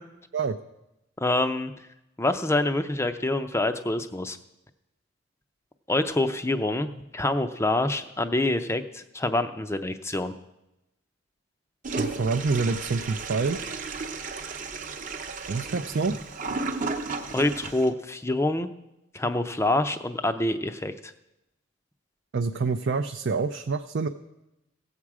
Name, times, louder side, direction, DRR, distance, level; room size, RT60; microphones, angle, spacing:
voice 1, 1.2-1.7 2.2-4.4 5.9-10.3 17.3-18.7 19.1-21.1, left 2 dB, 15° left, 9 dB, 0.5 m, -26 dB
Toilet flush, 11.8-17.9, right 3 dB, 40° right, 0.8 m, -34 dB
voice 2, 12.0-13.8 15.5-16.2 22.3-24.1, right 4 dB, 60° right, 5 dB, 0.5 m, -27 dB
16.5 x 7.4 x 4.8 m, 0.91 s
head